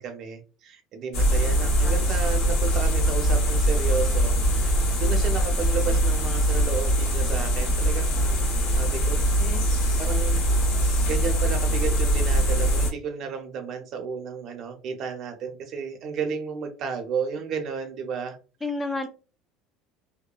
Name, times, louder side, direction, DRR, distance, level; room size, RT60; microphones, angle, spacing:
voice 1, 0.0-8.1 8.8-9.2 10.0-10.4 11.1-18.4, right 5 dB, 45° right, 0.6 m, -32 dB
sound 1, 1.1-12.9, right 1 dB, 65° left, 0.9 m, -22 dB
voice 2, 18.6-19.1, left 3 dB, 15° left, 0.3 m, -31 dB
2.8 x 2.0 x 2.3 m
cardioid pair, 135°, 0 cm